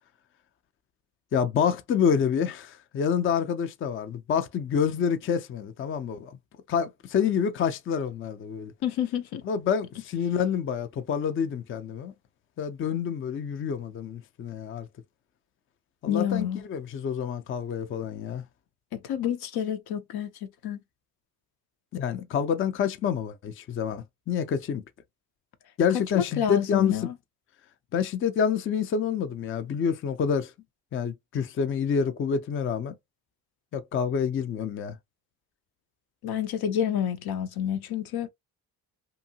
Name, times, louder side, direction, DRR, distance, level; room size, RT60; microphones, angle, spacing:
voice 1, 1.3-6.3 6.7-8.7 9.4-12.1 12.6-14.9 16.0-18.4 21.9-24.8 25.8-27.1 27.9-30.5 30.9-32.9 33.7-35.0, left 7 dB, 35° left, 0.4 m, -27 dB
voice 2, 8.8-9.4 16.1-16.6 18.9-20.3 20.6-20.8 26.2-27.1 36.2-38.3, left 9 dB, 75° left, 0.6 m, -28 dB
2.8 x 2.5 x 2.7 m
cardioid pair, 110°, 38 cm